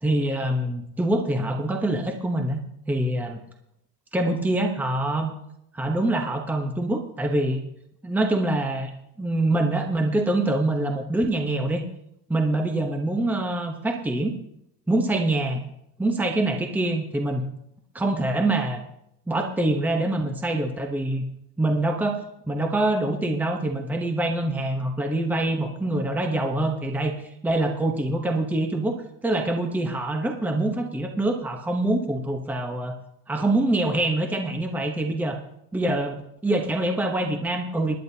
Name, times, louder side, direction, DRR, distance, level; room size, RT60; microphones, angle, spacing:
voice 1, 0.0-2.6 2.9-3.4 4.1-5.3 5.7-7.6 8.0-8.9 9.2-11.8 12.3-14.4 14.9-15.6 16.0-17.5 17.9-18.8 19.3-21.2 21.6-22.2 22.5-29.0 29.2-32.9 33.3-35.4 35.7-36.2 36.4-38.0, right 1 dB, 5° right, 3 dB, 1.0 m, -25 dB
23.0 x 11.0 x 2.8 m, 0.79 s
cardioid pair, 155°, 37 cm